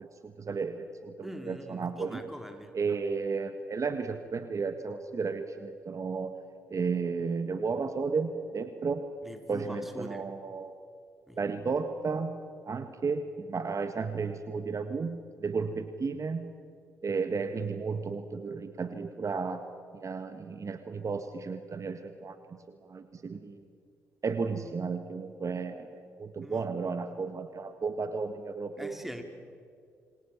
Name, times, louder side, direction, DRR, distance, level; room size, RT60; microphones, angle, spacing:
voice 1, 0.0-2.2 2.7-6.3 6.7-9.1 9.5-10.8 11.4-16.5 17.0-19.6 19.9-23.6 24.2-29.0, right 4 dB, 45° right, 8 dB, 1.8 m, -33 dB
voice 2, 1.2-2.7 9.2-10.3 11.3-11.4 26.4-26.7 28.8-29.2, equal, 5° right, 5 dB, 4.2 m, -43 dB
27.5 x 26.0 x 7.4 m, 2.2 s
hypercardioid pair, 45°, 7 cm